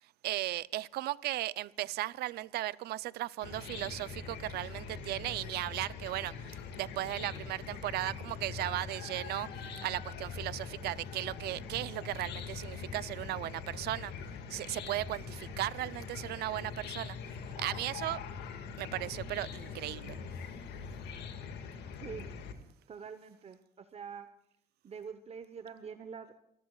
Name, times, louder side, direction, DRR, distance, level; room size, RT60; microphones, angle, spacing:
voice 1, 0.0-9.5 9.8-14.1 14.5-18.2 18.8-20.2, right 16 dB, 70° right, 0.5 m, -36 dB
Chicken rooster / Cricket, 3.4-22.5, left 6 dB, 85° left, 1.9 m, -43 dB
voice 2, 22.0-22.3 22.9-24.3 24.8-26.4, right 6 dB, 40° right, 0.9 m, -45 dB
29.5 x 13.5 x 2.4 m
cardioid pair, 110°, 17 cm